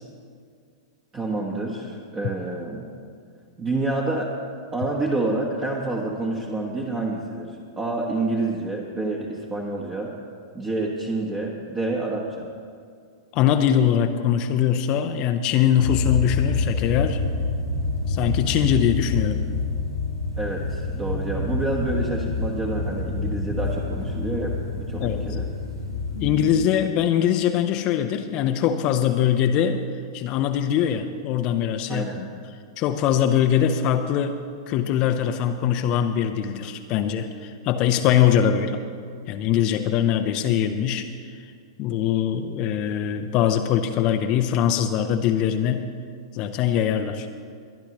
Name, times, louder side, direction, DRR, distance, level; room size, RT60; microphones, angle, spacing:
voice 1, 1.1-2.9 3.6-4.3 4.7-10.1 10.5-12.5 20.4-25.5 31.9-32.2, right 2 dB, 20° right, -2 dB, 1.4 m, -28 dB
voice 2, 13.3-17.2 18.1-19.4 25.0-25.2 26.2-29.8 30.1-32.3 32.8-38.8 39.3-41.4 41.8-45.9 46.3-47.3, left 9 dB, 40° left, 7 dB, 0.6 m, -22 dB
sound 1, 15.8-26.6, left 3 dB, 85° right, 2.6 m, -27 dB
22.5 x 11.0 x 3.0 m, 2.2 s
figure-of-eight pair, 100°, 2 cm